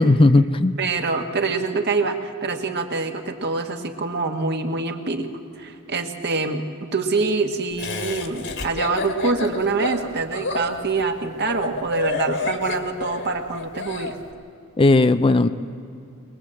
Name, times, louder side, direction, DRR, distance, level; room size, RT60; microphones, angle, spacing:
voice 1, 0.0-0.7 14.8-15.5, left 2 dB, 25° left, 11 dB, 0.5 m, -16 dB
voice 2, 0.8-5.3 5.6-14.1, right 3 dB, 50° right, 4 dB, 1.6 m, -25 dB
Laughter, 7.8-14.1, left 3 dB, 55° left, 1.8 m, -29 dB
21.5 x 21.5 x 7.7 m, 2.5 s
head